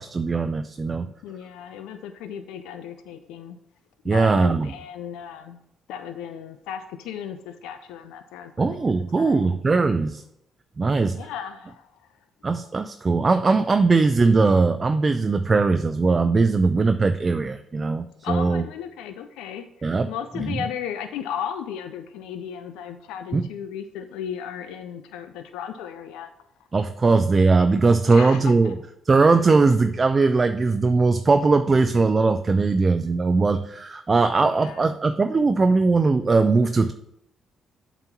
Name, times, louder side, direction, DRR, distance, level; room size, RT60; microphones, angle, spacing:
voice 1, 0.0-1.1 4.1-4.7 8.6-10.2 10.8-11.2 12.4-18.6 19.8-20.1 20.4-20.6 23.3-23.5 26.7-28.8 29.1-36.9, right 3 dB, 35° right, 9 dB, 0.3 m, -20 dB
voice 2, 1.2-3.6 4.0-5.6 5.9-9.6 11.2-12.1 18.2-26.3 28.1-28.7 34.4-34.8, left 8 dB, 90° left, 8 dB, 0.3 m, -35 dB
7.6 x 3.0 x 5.8 m, 0.79 s
supercardioid pair, 70°, 0 cm